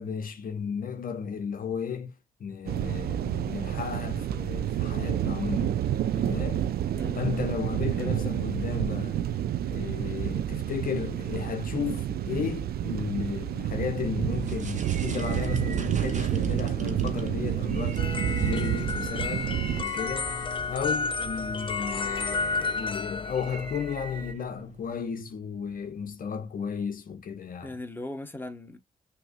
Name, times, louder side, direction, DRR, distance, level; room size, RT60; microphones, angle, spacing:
voice 1, 0.0-5.9 6.1-6.6 7.1-9.2 9.7-20.3 20.7-27.8, left 6 dB, 55° left, 0.8 m, -34 dB
sound 1, 2.7-19.8, right 11 dB, 70° right, 0.5 m, -29 dB
voice 2, 6.9-7.3 8.0-8.1 27.6-28.8, left 1 dB, 10° left, 1.1 m, -39 dB
sound 2, 14.3-24.9, right 4 dB, 45° right, 1.0 m, -43 dB
sound 3, 18.0-24.3, left 4 dB, 30° left, 0.5 m, -32 dB
6.1 x 2.9 x 2.3 m
hypercardioid pair, 45°, 17 cm